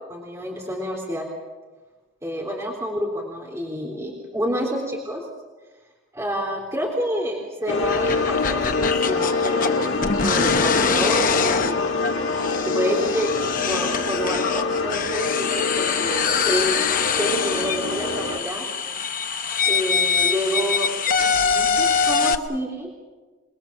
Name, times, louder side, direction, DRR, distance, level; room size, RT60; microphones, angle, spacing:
voice 1, 0.1-1.3 2.2-5.2 6.1-9.9 10.2-11.8 12.6-16.8 17.2-18.7 19.7-21.0 21.4-22.9, equal, 15° right, -2 dB, 3.6 m, -28 dB
sound 1, 7.7-18.4, left 3 dB, 80° left, 1.6 m, -25 dB
sound 2, 7.8-22.4, left 6 dB, 45° left, 1.1 m, -24 dB
28.5 x 21.5 x 7.5 m, 1.3 s
head